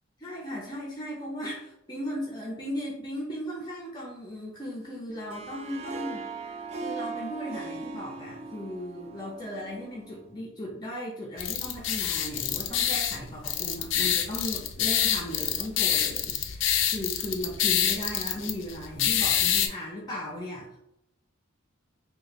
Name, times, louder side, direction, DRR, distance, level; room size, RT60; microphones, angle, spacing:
voice 1, 0.2-6.3 6.8-20.8, equal, 20° left, -3 dB, 0.6 m, -37 dB
Harp, 5.1-10.3, right 4 dB, 30° right, 0.4 m, -39 dB
sound 1, 11.4-19.7, left 9 dB, 65° left, 0.4 m, -27 dB
3.1 x 2.4 x 4.0 m, 0.80 s
head